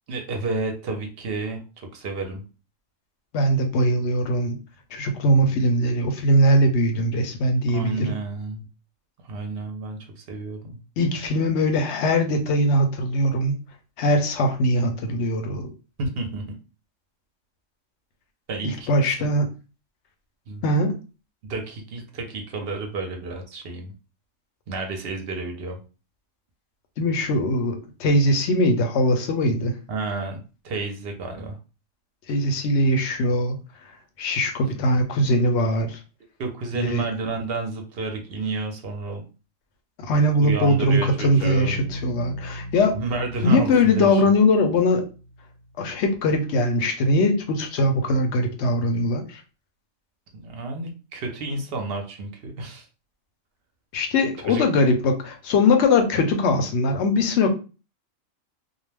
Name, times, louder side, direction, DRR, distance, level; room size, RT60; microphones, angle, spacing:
voice 1, 0.1-2.4 7.7-8.6 9.2-10.8 16.0-16.4 18.5-18.9 19.2-19.4 20.5-20.6 21.5-23.9 24.7-25.8 29.9-31.6 36.4-39.2 40.1-41.8 42.9-44.2 50.3-52.9 54.5-54.6, right 3 dB, 60° right, 3 dB, 0.7 m, -31 dB
voice 2, 3.3-4.6 4.9-8.1 11.0-13.6 14.0-15.7 18.6-19.5 20.6-20.9 27.0-29.7 32.3-33.6 34.2-36.0 36.7-37.0 40.0-42.9 43.4-45.0 45.8-49.4 53.9-57.5, left 1 dB, 65° left, 5 dB, 0.8 m, -21 dB
sound 1, 41.4-45.6, equal, 90° left, 1.0 m, -37 dB
2.3 x 2.1 x 3.2 m, 0.33 s
omnidirectional pair, 1.4 m